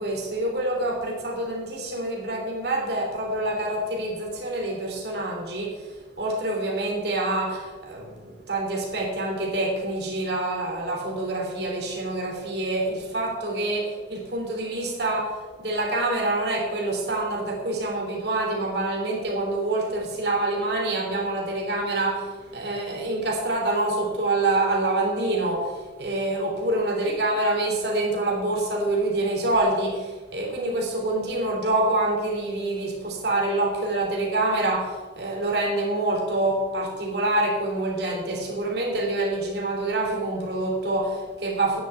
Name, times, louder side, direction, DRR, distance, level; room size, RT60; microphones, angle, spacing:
voice 1, 0.0-41.8, right 2 dB, 60° right, 0 dB, 3.2 m, -26 dB
9.9 x 7.0 x 8.9 m, 1.4 s
head